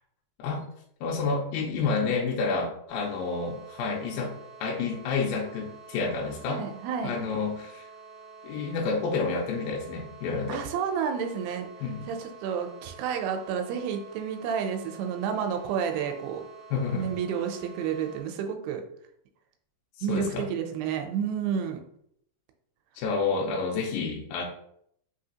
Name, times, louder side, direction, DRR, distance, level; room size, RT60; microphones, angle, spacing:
voice 1, 1.0-4.3 4.6-6.6 7.0-7.9 8.4-10.6 11.8-12.1 16.7-17.1 20.1-20.4 23.0-24.5, left 4 dB, 80° left, -2 dB, 2.2 m, -29 dB
sound 1, 2.9-18.2, right 5 dB, 50° left, 0.6 m, -48 dB
voice 2, 6.5-7.1 10.5-11.7 12.1-16.4 16.9-18.8 20.0-21.8, right 7 dB, 85° right, 5 dB, 2.5 m, -30 dB
5.9 x 2.8 x 2.8 m, 0.70 s
omnidirectional pair, 4.5 m